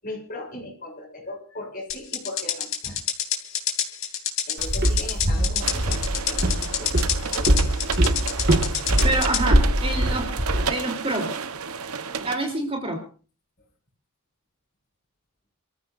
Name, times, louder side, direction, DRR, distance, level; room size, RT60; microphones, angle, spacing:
voice 1, 0.0-3.0 4.5-6.4 6.8-7.9, left 1 dB, 40° left, 0 dB, 7.0 m, -38 dB
sound 1, 1.9-9.4, left 9 dB, 65° left, 3.0 m, -27 dB
Walk footsteps, 4.6-10.7, right 1 dB, 50° right, 1.9 m, -23 dB
sound 2, 5.6-12.4, right 6 dB, 85° right, 1.0 m, -32 dB
voice 2, 9.0-10.3 10.7-11.4 12.2-13.0, right 2 dB, 25° right, 2 dB, 3.2 m, -27 dB
29.0 x 14.5 x 2.6 m, 0.37 s
head